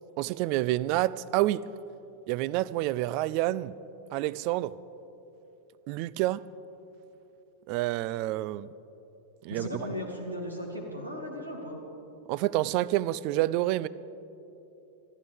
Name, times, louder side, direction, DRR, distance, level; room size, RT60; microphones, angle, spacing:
voice 1, 0.2-1.6 2.3-3.7 4.1-4.7 5.9-6.4 7.7-8.7 9.4-9.7 12.3-13.9, right 16 dB, 45° right, 19 dB, 0.4 m, -28 dB
voice 2, 9.5-11.8, left 1 dB, 85° right, 1 dB, 2.4 m, -36 dB
26.0 x 12.0 x 3.5 m, 2.9 s
figure-of-eight pair, 90°, 0 cm